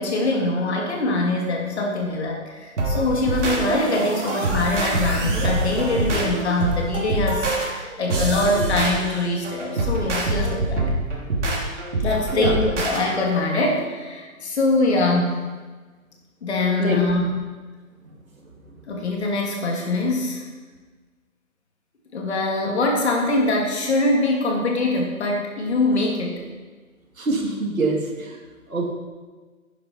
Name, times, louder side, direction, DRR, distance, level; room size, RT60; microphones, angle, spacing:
voice 1, 0.0-10.8 12.0-15.4 16.4-17.2 18.9-20.4 22.1-26.5, left 2 dB, 50° left, 0 dB, 2.9 m, -23 dB
sound 1, 2.8-13.0, right 2 dB, 55° right, 3.3 m, -25 dB
voice 2, 27.2-28.4 28.7-28.9, right 3 dB, 75° right, 0 dB, 2.9 m, -25 dB
11.0 x 10.0 x 4.5 m, 1.3 s
figure-of-eight pair, 145°, 42 cm